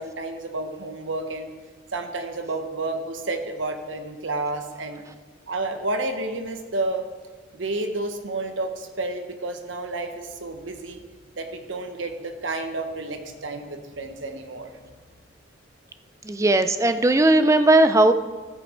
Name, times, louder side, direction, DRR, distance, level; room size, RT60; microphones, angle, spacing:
voice 1, 0.0-1.5 1.9-5.0 5.5-7.0 7.5-11.0 11.4-14.7, right 2 dB, 80° right, 6 dB, 1.1 m, -30 dB
voice 2, 16.2-18.1, right 2 dB, 15° right, 10 dB, 0.5 m, -17 dB
15.0 x 6.8 x 4.5 m, 1.4 s
head